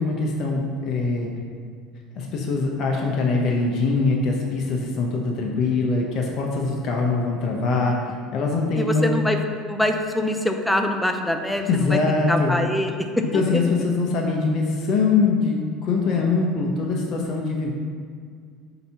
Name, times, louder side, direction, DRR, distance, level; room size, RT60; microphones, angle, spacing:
voice 1, 0.0-1.3 2.1-9.2 11.6-12.6 13.2-17.7, left 3 dB, 50° left, 0 dB, 0.9 m, -23 dB
voice 2, 8.8-9.4 9.7-12.0 12.3-13.6, left 1 dB, 5° left, 5 dB, 0.6 m, -24 dB
8.0 x 2.9 x 5.6 m, 2.1 s
supercardioid pair, 100°, 0 cm